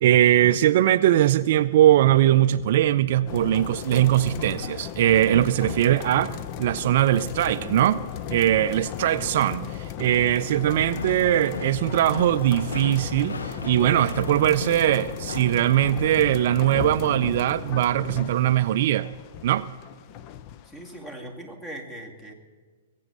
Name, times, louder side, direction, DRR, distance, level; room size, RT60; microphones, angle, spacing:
voice 1, 0.0-8.0 8.3-19.1 19.4-19.7, right 12 dB, 55° right, 13 dB, 0.4 m, -21 dB
sound 1, 3.3-21.1, left 10 dB, 40° left, 0.6 m, -36 dB
sound 2, 10.7-15.9, left 4 dB, 80° left, 1.1 m, -37 dB
voice 2, 20.7-22.3, right 1 dB, 15° left, 4 dB, 2.4 m, -39 dB
21.0 x 8.3 x 6.7 m, 1.5 s
figure-of-eight pair, 115°, 0 cm